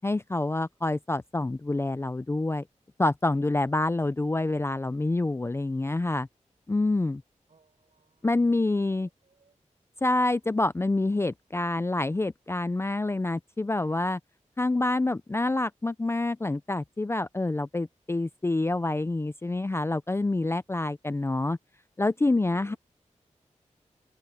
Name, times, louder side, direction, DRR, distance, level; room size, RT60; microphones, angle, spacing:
voice 1, 0.0-2.6 3.0-6.3 6.7-7.2 8.2-9.1 10.0-14.2 14.6-21.6 22.0-22.8, left 2 dB, 20° left, 0.4 m, -27 dB
voice 2, 7.5-9.6 22.4-22.8, right 4 dB, 65° right, 5.7 m, -61 dB
open air
wide cardioid pair, 95°, 13 cm